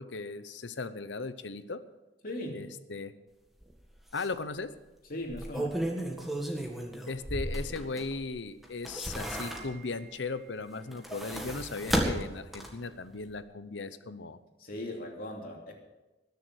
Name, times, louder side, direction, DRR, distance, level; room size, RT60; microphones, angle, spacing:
voice 1, 0.0-1.8 2.5-3.1 4.1-4.7 7.1-14.4, left 3 dB, 85° left, 13 dB, 0.8 m, -37 dB
voice 2, 2.2-2.7 5.1-5.9 14.6-15.7, left 1 dB, 50° left, 0 dB, 3.0 m, -38 dB
sound 1, 3.6-3.7 4.1-4.3 5.2-8.3 8.6-10.0 10.8-12.9 13.3-13.4, right 1 dB, ahead, 1.8 m, -34 dB
20.5 x 7.0 x 6.4 m, 1.1 s
head